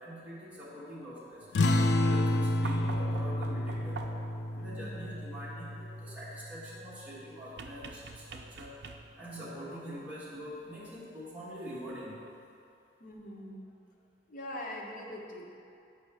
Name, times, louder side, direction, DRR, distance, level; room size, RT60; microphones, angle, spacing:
voice 1, 0.0-1.5 2.0-4.2 4.5-8.7 9.2-12.3, equal, 10° right, -11 dB, 1.3 m, -44 dB
sound 1, 1.5-6.6, left 1 dB, 80° left, 0.4 m, -30 dB
sound 2, 2.6-4.4 7.6-9.3 10.9-11.0, right 3 dB, 70° right, 0.4 m, -45 dB
voice 2, 4.5-5.1 13.0-13.7 14.3-15.4, left 1 dB, 50° left, -2 dB, 0.8 m, -43 dB
7.2 x 5.0 x 3.4 m, 2.6 s
head